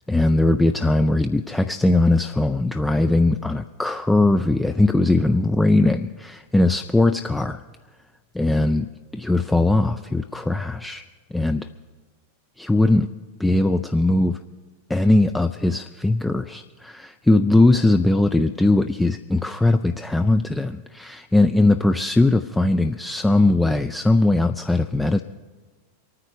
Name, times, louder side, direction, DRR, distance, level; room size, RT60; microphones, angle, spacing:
voice 1, 0.0-7.6 8.3-11.0 11.3-11.7 12.6-13.1 13.4-14.4 14.9-25.2, left 2 dB, 5° left, 8 dB, 0.4 m, -20 dB
24.5 x 9.6 x 4.7 m, 1.3 s
figure-of-eight pair, 90°, 0 cm